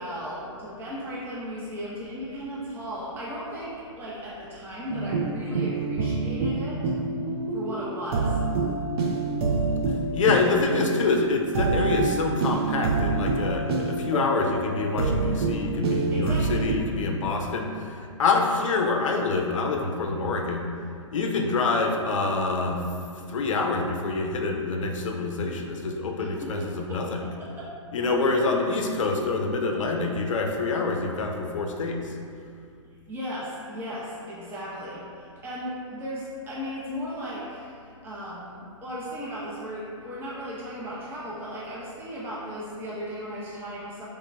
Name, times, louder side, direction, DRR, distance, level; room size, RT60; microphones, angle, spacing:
voice 1, 0.0-6.8 7.5-8.4 16.1-16.7 26.2-27.0 27.6-27.7 33.1-44.1, equal, 15° right, -7 dB, 0.6 m, -36 dB
sound 1, 4.9-16.8, right 3 dB, 50° right, 0.4 m, -27 dB
voice 2, 10.1-20.7 21.1-22.8 23.3-27.4 27.9-32.1, left 3 dB, 75° left, 2 dB, 0.5 m, -26 dB
3.8 x 3.4 x 2.2 m, 2.3 s
hypercardioid pair, 125°, 16 cm